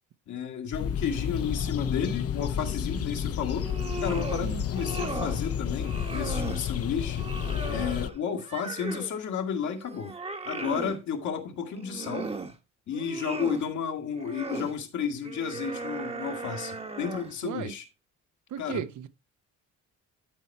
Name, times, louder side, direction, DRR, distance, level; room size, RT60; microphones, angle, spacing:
voice 1, 0.3-3.7 4.0-7.3 7.7-10.1 10.5-12.3 12.9-17.8 18.6-18.8, left 7 dB, 70° left, 1.9 m, -32 dB
sound 1, 0.7-8.1, left 8 dB, 50° left, 0.7 m, -31 dB
sound 2, 3.5-4.4 4.7-5.4 5.8-6.7 7.1-9.2 9.6-11.0 11.7-12.5 12.9-13.7 14.1-14.7 15.2-17.4, right 3 dB, 20° right, 1.0 m, -37 dB
voice 2, 17.4-17.7 18.5-19.1, right 10 dB, 70° right, 0.9 m, -35 dB
12.0 x 4.4 x 4.4 m
cardioid pair, 90°, 30 cm